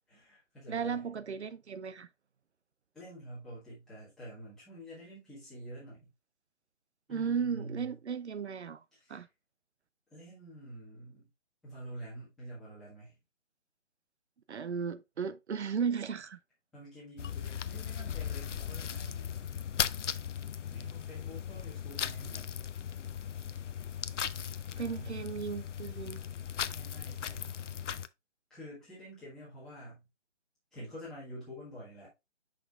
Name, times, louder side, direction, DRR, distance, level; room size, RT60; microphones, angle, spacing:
voice 1, 0.1-1.1 2.9-6.1 7.1-8.0 8.9-9.2 10.1-11.3 11.6-13.2 16.7-19.4 20.7-22.6 24.7-25.2 26.6-27.6 28.5-30.1 30.7-32.1, right 1 dB, ahead, 1.5 m, -48 dB
voice 2, 0.7-2.1 7.1-8.8 9.1-9.3 14.5-16.4 24.8-26.2, right 6 dB, 70° right, 0.6 m, -35 dB
sound 1, 17.2-28.1, left 8 dB, 80° left, 0.6 m, -37 dB
6.7 x 5.9 x 2.4 m
hypercardioid pair, 165°, 36 cm